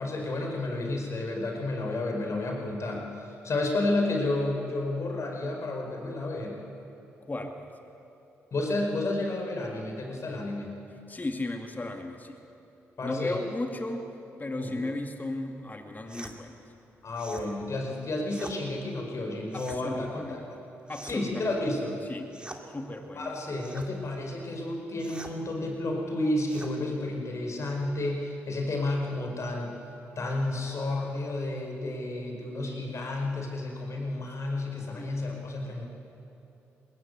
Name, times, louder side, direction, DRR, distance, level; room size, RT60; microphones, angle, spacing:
voice 1, 0.0-6.6 8.5-10.7 13.0-13.4 14.6-14.8 17.0-20.4 21.0-22.0 23.2-29.7 30.1-35.9, left 2 dB, 50° left, 1 dB, 5.1 m, -31 dB
voice 2, 7.2-7.7 11.1-12.4 13.0-14.0 14.4-16.6 19.5-20.4 20.9-21.5 22.0-22.3 22.7-23.3 34.8-35.1, left 2 dB, 30° left, 4 dB, 2.3 m, -35 dB
sound 1, 16.1-16.4 17.1-17.5 18.3-18.6 19.5-19.8 20.9-21.3 22.3-22.6 23.6-23.9 25.0-25.4 26.5-26.7, right 1 dB, 15° right, 2.6 m, -44 dB
21.5 x 18.5 x 8.1 m, 3.0 s
hypercardioid pair, 45°, 6 cm